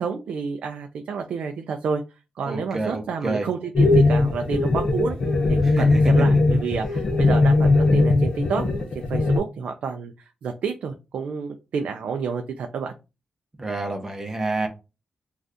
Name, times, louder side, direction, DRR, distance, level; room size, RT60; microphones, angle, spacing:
voice 1, 0.0-2.0 2.4-5.2 5.5-12.9, right 6 dB, 75° right, 0.3 m, -29 dB
voice 2, 2.4-3.5 5.6-6.0 13.6-14.7, right 2 dB, 20° right, 0.7 m, -28 dB
sound 1, 3.7-9.4, left 3 dB, 40° left, 0.5 m, -19 dB
2.6 x 2.3 x 3.4 m
wide cardioid pair, 145°, 2 cm